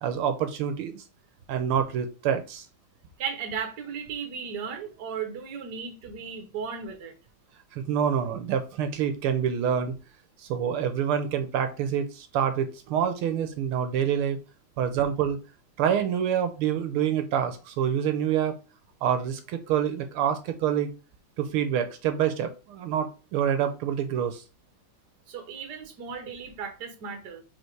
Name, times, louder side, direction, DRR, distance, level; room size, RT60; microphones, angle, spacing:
voice 1, 0.0-1.0 1.5-2.7 7.7-9.9 10.4-14.4 14.8-15.4 15.8-18.6 19.0-20.9 21.4-24.4, right 8 dB, 80° right, 1.7 m, -27 dB
voice 2, 3.2-7.2 25.3-27.4, right 6 dB, 55° right, 1.6 m, -35 dB
5.3 x 4.1 x 4.5 m
omnidirectional pair, 2.4 m